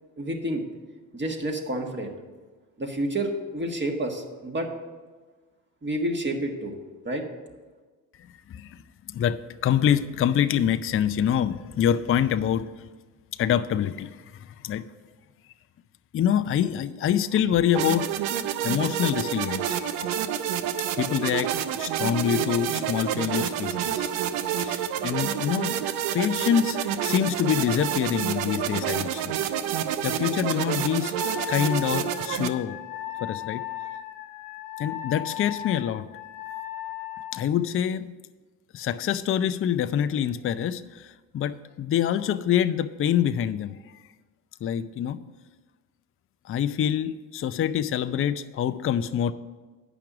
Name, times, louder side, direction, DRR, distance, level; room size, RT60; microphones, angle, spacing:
voice 1, 0.2-0.6 1.1-2.1 2.8-4.7 5.8-6.7 7.0-7.2, right 1 dB, 25° right, 2 dB, 1.6 m, -29 dB
voice 2, 8.3-12.7 13.4-14.8 16.1-18.1 18.6-20.1 21.0-24.1 24.6-25.8 26.1-29.3 30.0-31.2 31.5-32.8 33.2-33.6 34.8-36.1 37.3-38.1 38.7-43.8 44.6-45.2 46.4-49.3, left 9 dB, 35° left, 12 dB, 0.5 m, -26 dB
sound 1, 17.7-32.5, right 10 dB, 85° right, 0.6 m, -28 dB
Wind instrument woodwind instrument, 31.2-37.5, left 13 dB, 90° left, 0.7 m, -36 dB
9.0 x 5.9 x 6.0 m, 1.3 s
supercardioid pair, 65°, 41 cm